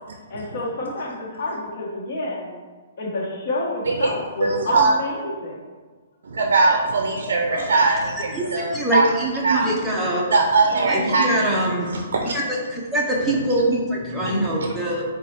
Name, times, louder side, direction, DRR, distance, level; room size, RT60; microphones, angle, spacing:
voice 1, 0.3-2.5 3.0-5.6 7.5-7.8 8.3-8.5, left 2 dB, 50° left, -3 dB, 1.1 m, -29 dB
voice 2, 4.4-4.9 6.2-9.1 9.4-9.7 10.3-12.4 13.5-13.6 14.3-14.5, right 3 dB, 75° right, 2 dB, 0.4 m, -21 dB
voice 3, 8.7-10.2 10.8-12.0 12.3-12.4 12.7-15.0, right 1 dB, ahead, -6 dB, 0.6 m, -23 dB
4.1 x 2.3 x 4.2 m, 1.4 s
hypercardioid pair, 160°, 0 cm